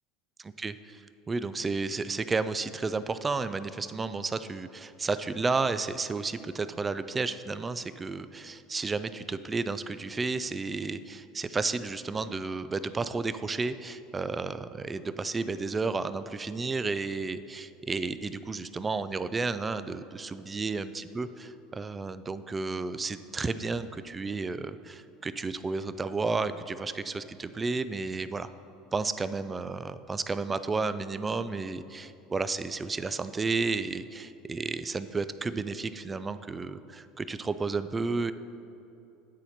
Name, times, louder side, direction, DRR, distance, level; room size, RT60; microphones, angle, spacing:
voice 1, 0.4-28.5 28.9-38.3, right 4 dB, 20° right, 13 dB, 0.3 m, -32 dB
9.7 x 4.3 x 5.8 m, 2.8 s
supercardioid pair, 115°, 0 cm